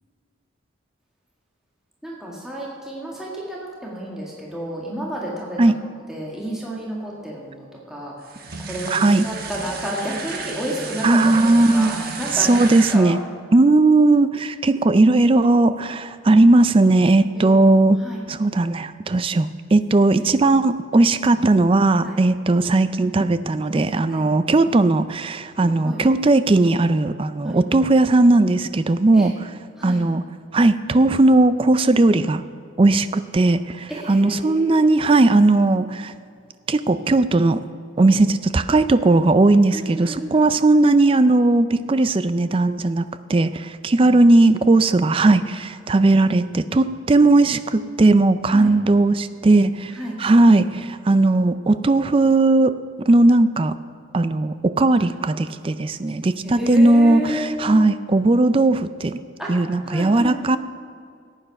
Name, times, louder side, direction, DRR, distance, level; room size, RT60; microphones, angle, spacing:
voice 1, 2.0-5.7 6.1-8.1 8.6-11.4 11.7-13.2 17.3-17.6 18.0-18.2 20.4-20.5 22.0-22.2 24.1-24.3 25.6-26.0 27.4-27.6 29.1-29.3 29.8-30.0 33.9-34.9 39.7-40.4 44.0-44.2 48.5-48.7 50.0-50.2 56.4-57.5 59.4-59.5 59.8-60.4, right 1 dB, 5° right, -5 dB, 1.8 m, -31 dB
sound 1, 8.2-13.0, right 4 dB, 50° right, 1.2 m, -33 dB
voice 2, 8.9-9.3 11.0-11.9 12.3-13.2 13.5-18.0 18.3-29.5 29.8-30.2 30.5-32.4 32.8-36.1 36.7-37.6 38.0-52.7 53.0-53.7 54.1-59.2 59.5-60.6, right 2 dB, 25° right, 13 dB, 0.4 m, -17 dB
14.5 x 9.1 x 5.9 m, 2.2 s
head